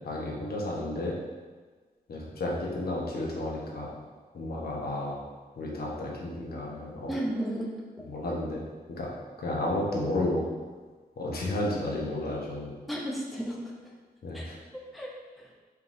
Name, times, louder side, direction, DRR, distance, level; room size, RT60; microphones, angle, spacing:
voice 1, 0.0-1.2 2.1-3.9 4.3-5.2 5.6-7.1 8.0-8.6 8.9-10.5 11.2-12.7 14.2-14.5, left 1 dB, 70° left, -3 dB, 0.9 m, -32 dB
voice 2, 7.1-7.7 12.9-13.7 14.3-14.5 14.7-15.1 15.4-15.5, right 1 dB, ahead, -3 dB, 0.5 m, -33 dB
4.5 x 3.5 x 2.6 m, 1.4 s
wide cardioid pair, 120°, 16 cm